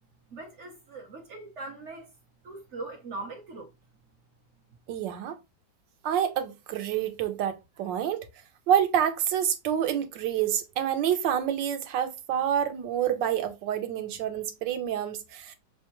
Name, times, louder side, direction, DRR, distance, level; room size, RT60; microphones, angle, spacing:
voice 1, 0.3-2.1 2.4-3.7, right 2 dB, 60° right, 0.8 m, -40 dB
voice 2, 4.9-5.4 6.0-8.3 8.7-15.5, right 9 dB, 75° right, 1.3 m, -28 dB
6.1 x 2.3 x 2.9 m
omnidirectional pair, 2.1 m